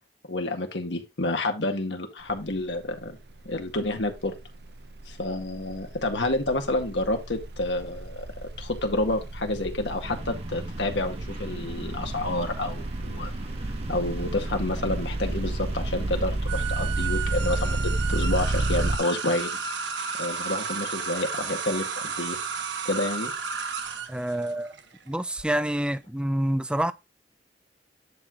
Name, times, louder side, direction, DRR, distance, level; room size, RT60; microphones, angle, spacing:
voice 1, 0.3-3.2 3.5-4.4 5.1-8.3 8.6-13.3 13.9-19.5 20.1-22.4 22.8-23.3, left 2 dB, 80° left, 2.0 m, -29 dB
sound 1, 2.2-2.6 2.8-19.0, right 2 dB, 60° right, 0.7 m, -31 dB
sound 2, 10.0-18.8, right 1 dB, 35° right, 1.7 m, -41 dB
sound 3, 16.5-25.4, right 5 dB, 80° right, 1.4 m, -33 dB
voice 2, 24.1-24.7 25.1-26.9, right 1 dB, 5° right, 0.5 m, -27 dB
10.5 x 4.9 x 3.8 m
head